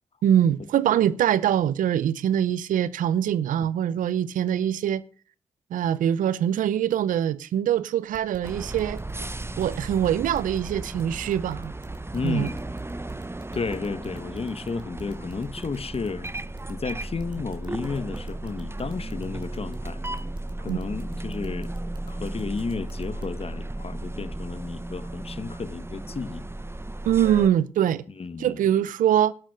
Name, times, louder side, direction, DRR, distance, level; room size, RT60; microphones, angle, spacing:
voice 1, 0.2-5.0 5.7-9.0 9.6-11.7 12.2-12.5 20.7-20.8 27.0-28.0 28.4-29.3, right 10 dB, 85° right, 0.7 m, -23 dB
sound 1, 8.1-23.2, right 3 dB, 35° right, 4.3 m, -45 dB
sound 2, 8.4-27.5, right 2 dB, 20° right, 1.1 m, -35 dB
voice 2, 12.1-12.6 13.5-16.3 16.7-20.0 20.6-21.7 22.1-26.4 28.2-28.6, left 4 dB, 50° left, 1.3 m, -32 dB
12.0 x 11.5 x 6.3 m
supercardioid pair, 40°, 13 cm